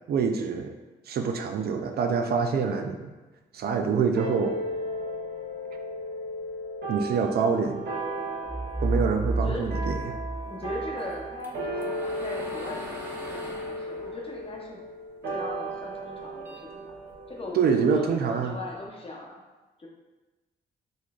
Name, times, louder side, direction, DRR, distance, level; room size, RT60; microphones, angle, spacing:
voice 1, 0.1-0.7 1.1-3.1 3.5-4.6 6.9-7.8 8.8-10.2 17.5-18.6, right 5 dB, 60° right, 5 dB, 0.4 m, -26 dB
sound 1, 4.2-18.9, right 1 dB, 75° right, 1.1 m, -36 dB
sound 2, 8.4-11.3, right 2 dB, 85° left, 0.9 m, -30 dB
voice 2, 10.4-14.8 15.2-17.0 17.3-19.4 19.8-19.9, left 2 dB, 30° left, -1 dB, 0.8 m, -39 dB
sound 3, 11.0-15.5 15.9-17.4, equal, 10° right, 0.8 m, -42 dB
4.0 x 3.1 x 2.4 m, 1.2 s
cardioid pair, 75°, 18 cm